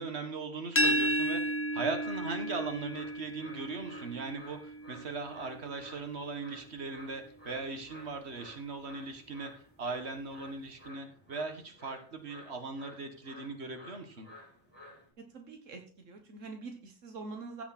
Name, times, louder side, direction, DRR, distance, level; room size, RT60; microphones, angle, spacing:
voice 1, 0.0-9.5 9.8-14.3, right 3 dB, 55° right, 6 dB, 2.0 m, -39 dB
sound 1, 0.8-6.5, right 1 dB, 20° left, 0.3 m, -33 dB
sound 2, 1.7-15.1, left 2 dB, 20° right, 5.5 m, -54 dB
voice 2, 15.3-17.6, right 3 dB, 80° right, 4 dB, 1.7 m, -44 dB
16.0 x 5.7 x 4.3 m, 0.40 s
omnidirectional pair, 1.3 m